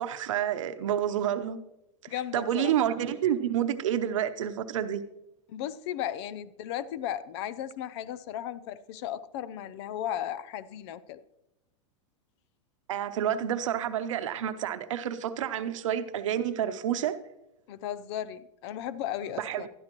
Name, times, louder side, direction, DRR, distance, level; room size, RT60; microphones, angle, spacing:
voice 1, 0.0-1.6 2.0-5.0 12.9-17.2 19.4-19.7, right 10 dB, 85° right, 0.7 m, -29 dB
voice 2, 2.1-2.7 5.5-11.2 17.7-19.7, left 11 dB, 60° left, 0.5 m, -35 dB
12.5 x 10.5 x 3.0 m
supercardioid pair, 135°, 16 cm